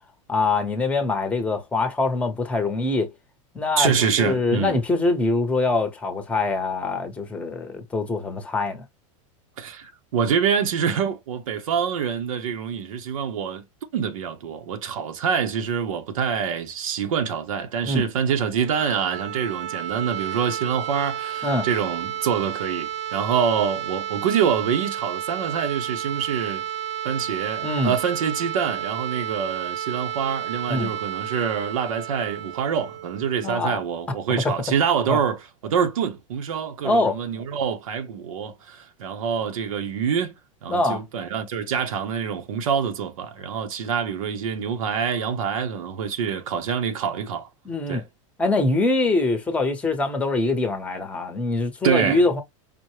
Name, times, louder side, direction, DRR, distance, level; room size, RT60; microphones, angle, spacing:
voice 1, 0.3-3.1 3.5-3.9 4.2-8.9 17.8-18.0 21.4-21.6 27.6-27.9 30.7-30.9 33.4-33.8 34.4-34.5 35.1-35.2 36.8-37.2 40.7-41.0 47.6-48.0 48.4-52.4, left 3 dB, 10° left, 0.8 m, -23 dB
voice 2, 3.8-4.8 9.6-13.6 13.9-26.6 27.0-40.3 40.6-47.5 47.9-48.1 51.8-52.2, right 7 dB, 90° right, 0.9 m, -26 dB
sound 1, 18.5-34.3, right 10 dB, 65° right, 0.7 m, -32 dB
5.1 x 2.1 x 3.1 m
supercardioid pair, 145°, 17 cm